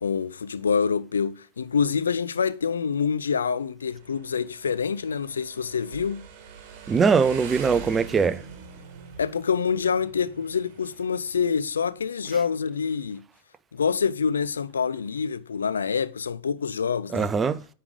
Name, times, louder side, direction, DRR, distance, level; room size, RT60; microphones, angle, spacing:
voice 1, 0.0-6.2 9.2-13.2 13.7-17.3, left 6 dB, 70° left, 0.3 m, -26 dB
Motorcycle, 3.8-12.0, right 7 dB, 45° right, 1.4 m, -44 dB
voice 2, 6.9-8.4 17.1-17.6, right 5 dB, 20° right, 0.4 m, -21 dB
9.5 x 3.3 x 5.0 m
figure-of-eight pair, 90°, 0 cm